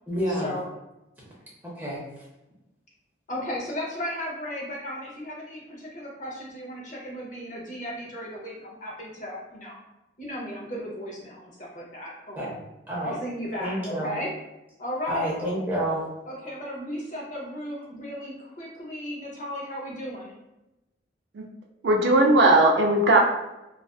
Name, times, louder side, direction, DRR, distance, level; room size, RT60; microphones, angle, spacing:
voice 1, 0.1-0.5 1.6-2.1 12.4-12.6 12.9-13.2 13.6-14.2 15.1-16.1, equal, 10° right, -6 dB, 0.6 m, -29 dB
voice 2, 3.3-9.8 10.2-12.5 13.0-14.3 14.8-15.3 16.3-20.3, equal, 40° left, -4 dB, 0.6 m, -35 dB
voice 3, 21.8-23.2, right 2 dB, 60° right, 1 dB, 0.3 m, -18 dB
2.4 x 2.3 x 2.2 m, 0.96 s
head